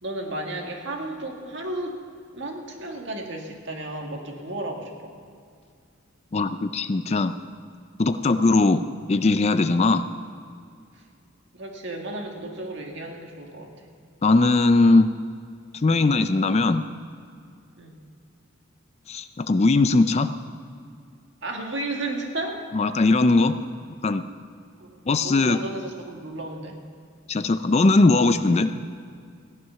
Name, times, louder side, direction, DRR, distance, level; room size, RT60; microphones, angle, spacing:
voice 1, 0.0-2.0 2.3-5.1 9.9-10.1 11.5-13.7 17.8-18.0 21.4-22.6 24.8-24.9 25.2-26.8, right 2 dB, 60° right, 1 dB, 1.9 m, -33 dB
voice 2, 6.3-7.3 8.0-10.1 14.2-15.1 15.8-16.9 19.1-20.3 22.7-23.6 24.0-24.2 25.1-25.6 27.3-28.7, left 3 dB, 30° left, 11 dB, 0.4 m, -19 dB
15.5 x 11.0 x 5.7 m, 2.3 s
head